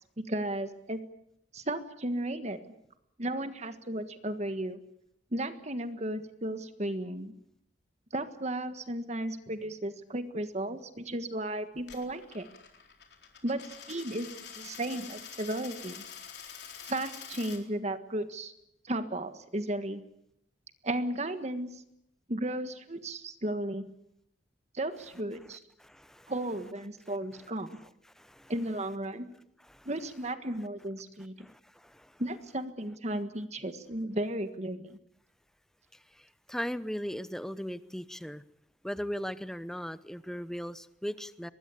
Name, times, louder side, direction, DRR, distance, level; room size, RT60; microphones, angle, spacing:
voice 1, 0.3-1.0 1.5-2.6 3.2-4.8 5.3-7.3 8.1-12.4 13.4-13.6 13.9-14.3 14.6-16.0 16.9-18.5 18.9-20.0 20.8-21.7 22.3-23.8 24.7-25.6 26.3-27.8 28.5-29.2 29.8-31.3 32.2-35.0, right 1 dB, 40° right, 9 dB, 1.6 m, -34 dB
Coin (dropping), 11.8-17.6, left 8 dB, 65° left, 4.2 m, -46 dB
voice 2, 25.8-26.3 27.8-27.9 28.2-28.5 29.6-29.9 31.4-32.2 36.1-38.4 38.8-41.5, equal, 5° left, 14 dB, 0.9 m, -38 dB
23.5 x 20.5 x 8.4 m, 0.78 s
head